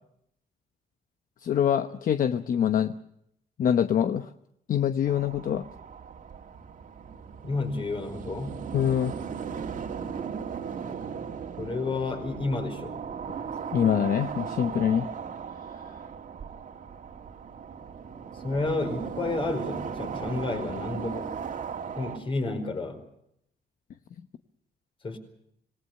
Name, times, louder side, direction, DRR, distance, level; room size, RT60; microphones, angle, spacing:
voice 1, 1.4-2.9 3.6-4.3 4.7-5.6 8.7-9.1 13.7-15.1, left 9 dB, 55° left, 10 dB, 1.0 m, -24 dB
sound 1, 5.0-22.2, right 6 dB, 50° right, 2.5 m, -37 dB
voice 2, 7.4-8.6 11.6-13.0 18.3-21.4 22.0-23.0 25.0-25.2, left 3 dB, 30° left, 6 dB, 4.7 m, -31 dB
26.5 x 19.5 x 6.7 m, 0.75 s
cardioid pair, 145°, 17 cm